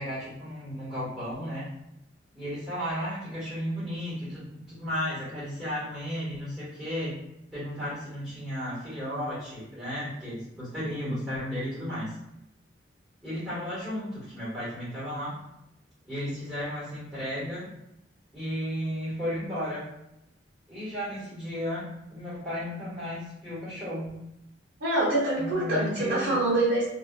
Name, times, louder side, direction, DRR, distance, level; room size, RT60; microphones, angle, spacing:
voice 1, 0.0-1.7 2.3-7.2 7.5-12.1 13.2-15.4 16.0-17.7 18.3-19.9 20.7-24.1 25.4-26.3, equal, 5° right, -10 dB, 1.4 m, -34 dB
voice 2, 24.8-26.9, right 2 dB, 65° right, -9 dB, 0.7 m, -25 dB
2.4 x 2.4 x 2.3 m, 0.84 s
head